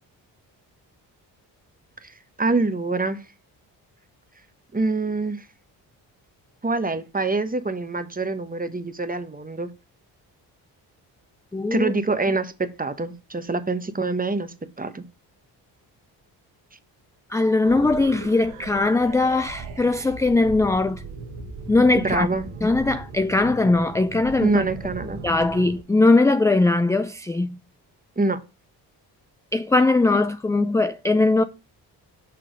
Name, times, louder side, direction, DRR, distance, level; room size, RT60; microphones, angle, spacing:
voice 1, 2.4-3.2 4.7-5.5 6.6-9.7 11.7-15.0 21.9-22.5 24.4-25.2 28.2-28.4, right 3 dB, 20° right, 1.1 m, -25 dB
voice 2, 11.5-11.9 17.3-21.0 21.7-22.3 22.6-24.7 25.2-27.6 29.5-31.4, left 2 dB, 5° left, 0.3 m, -20 dB
sound 1, 17.6-25.8, right 4 dB, 85° right, 1.5 m, -38 dB
6.0 x 4.3 x 5.1 m
supercardioid pair, 50°, 48 cm